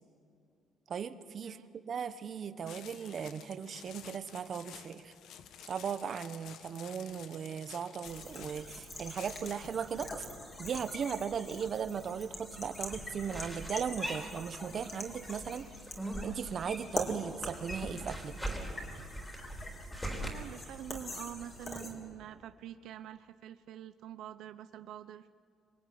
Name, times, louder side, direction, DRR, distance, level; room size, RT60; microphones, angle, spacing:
voice 1, 0.9-1.6 1.9-5.1 5.7-10.3 10.6-15.7 16.2-18.3, right 7 dB, 40° right, 11 dB, 1.2 m, -37 dB
sound 1, 2.7-9.8, left 9 dB, 70° left, 1.5 m, -52 dB
sound 2, 8.0-21.9, left 1 dB, 25° left, 3.8 m, -44 dB
sound 3, 12.9-14.9 15.2-17.1 17.3-20.3, right 1 dB, 5° left, 4.1 m, -41 dB
voice 2, 20.0-25.3, right 11 dB, 75° right, 10 dB, 0.9 m, -46 dB
26.5 x 22.5 x 9.6 m, 2.3 s
cardioid pair, 150°, 0 cm